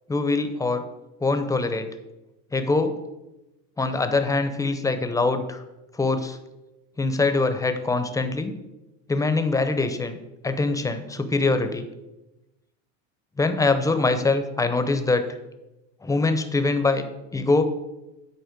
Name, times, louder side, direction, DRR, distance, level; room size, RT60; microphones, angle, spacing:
voice 1, 0.1-0.8 1.2-1.9 2.5-3.0 3.8-5.6 5.9-6.4 7.0-8.6 9.1-10.2 10.4-11.9 13.4-15.2 16.0-17.0 17.3-17.6, left 3 dB, 10° left, 9 dB, 0.6 m, -23 dB
9.5 x 4.2 x 5.1 m, 1.0 s
supercardioid pair, 115°, 36 cm